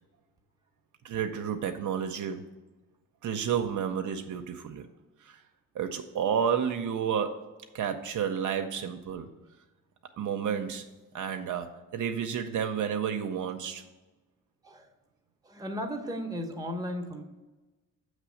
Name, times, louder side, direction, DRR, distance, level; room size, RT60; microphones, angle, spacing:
voice 1, 1.0-2.4 3.2-4.9 5.2-5.4 5.7-7.5 7.7-9.3 10.2-10.8 11.1-13.8, right 8 dB, 65° right, 6 dB, 0.6 m, -31 dB
voice 2, 15.4-17.2, equal, 10° right, 2 dB, 1.0 m, -35 dB
7.5 x 3.2 x 6.3 m, 1.2 s
cardioid pair, 85°, 33 cm